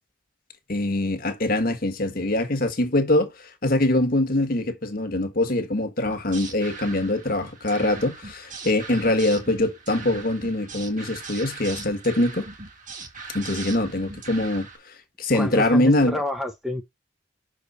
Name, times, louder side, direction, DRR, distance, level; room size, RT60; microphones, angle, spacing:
voice 1, 0.7-12.4 13.3-14.7 15.2-16.2, left 1 dB, 50° left, 1.6 m, -23 dB
sound 1, 6.0-14.8, right 4 dB, 45° right, 1.8 m, -39 dB
voice 2, 15.3-16.8, left 1 dB, ahead, 0.8 m, -28 dB
6.1 x 5.0 x 4.1 m
head